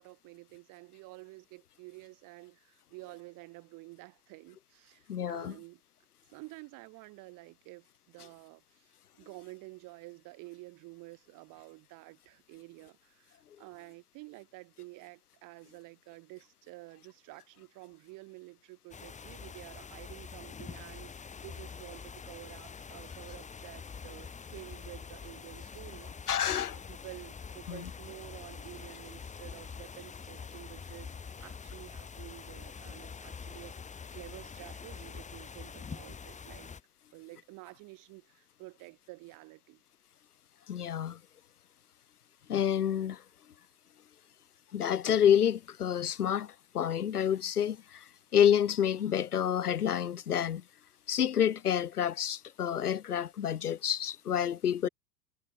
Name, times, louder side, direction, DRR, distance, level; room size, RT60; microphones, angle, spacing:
voice 1, 0.0-5.8 6.3-26.5 26.9-36.7 37.1-39.8 54.8-54.9, right 23 dB, 45° right, 3.2 m, -50 dB
voice 2, 5.1-5.5 26.3-26.8 27.7-27.8 40.7-41.2 42.5-43.2 44.7-48.0 48.3-50.6 51.1-54.9, left 9 dB, 80° left, 1.3 m, -28 dB
sound 1, 18.9-36.8, left 5 dB, 15° left, 2.5 m, -45 dB
figure-of-eight pair, 90°, 45 cm